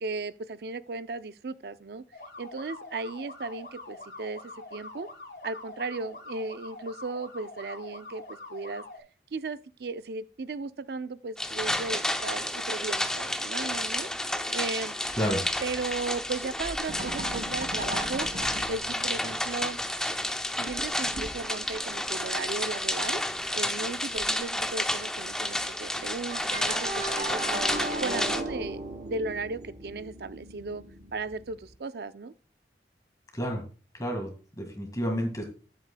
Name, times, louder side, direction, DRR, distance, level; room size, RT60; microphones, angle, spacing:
voice 1, 0.0-2.0 2.4-4.4 4.7-5.1 5.4-8.8 9.3-14.1 14.5-15.0 15.6-18.3 18.7-19.8 20.6-23.2 23.5-27.7 28.0-30.8 31.1-32.3, right 3 dB, 60° right, 0.5 m, -36 dB
sound 1, 2.1-9.0, left 2 dB, 65° left, 1.8 m, -44 dB
sound 2, 11.4-28.4, left 1 dB, 5° left, 0.5 m, -31 dB
sound 3, 15.1-16.3 16.6-19.5 20.1-20.4 20.7-21.9 23.3-23.4 23.8-23.9 24.2-24.5 26.3-31.7, right 2 dB, 45° right, 0.9 m, -38 dB
voice 2, 33.3-33.6 33.9-35.4, equal, 20° left, 1.8 m, -30 dB
11.0 x 8.2 x 2.2 m
head